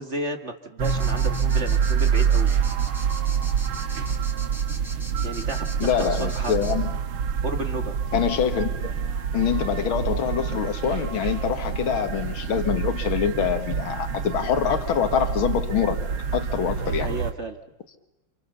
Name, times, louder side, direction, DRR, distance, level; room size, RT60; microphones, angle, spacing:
voice 1, 0.0-2.5 5.2-6.5 7.4-8.0 17.0-17.6, right 2 dB, 35° right, 2.3 m, -32 dB
sound 1, 0.8-6.7, equal, ahead, 4.3 m, -41 dB
sound 2, 0.8-17.3, right 7 dB, 85° right, 2.2 m, -26 dB
voice 2, 5.8-6.9 8.1-8.9 9.3-16.0 16.3-17.1, left 8 dB, 80° left, 2.4 m, -25 dB
29.5 x 28.0 x 6.9 m
omnidirectional pair, 2.2 m